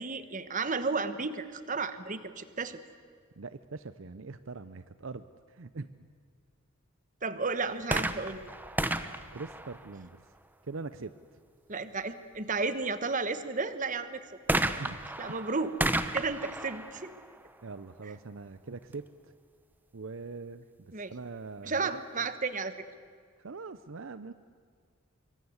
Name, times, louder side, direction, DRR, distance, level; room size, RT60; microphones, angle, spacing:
voice 1, 0.0-2.8 7.2-8.4 11.7-14.2 15.2-15.8 16.1-17.1 20.9-21.1 21.6-22.7, right 4 dB, 40° right, 12 dB, 1.2 m, -33 dB
voice 2, 3.4-6.1 9.3-10.2 10.7-11.1 14.8-15.0 15.3-15.5 17.6-19.3 19.9-22.0 23.4-24.3, right 4 dB, 65° right, 13 dB, 0.6 m, -42 dB
sound 1, 7.8-10.4 14.5-18.1 18.9-19.0, right 1 dB, 10° right, 0.8 m, -33 dB
25.0 x 24.0 x 8.1 m, 2.1 s
head